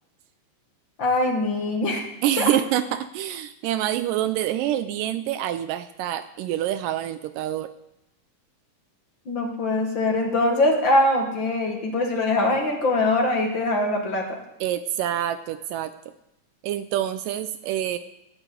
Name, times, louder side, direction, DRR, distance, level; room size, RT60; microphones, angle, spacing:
voice 1, 1.0-2.0 2.4-2.5 9.3-14.4, left 2 dB, 45° left, 2 dB, 1.8 m, -22 dB
voice 2, 2.2-7.7 14.6-15.9 16.6-18.0, right 12 dB, 80° right, 11 dB, 2.0 m, -26 dB
13.5 x 7.4 x 8.4 m, 0.88 s
omnidirectional pair, 4.1 m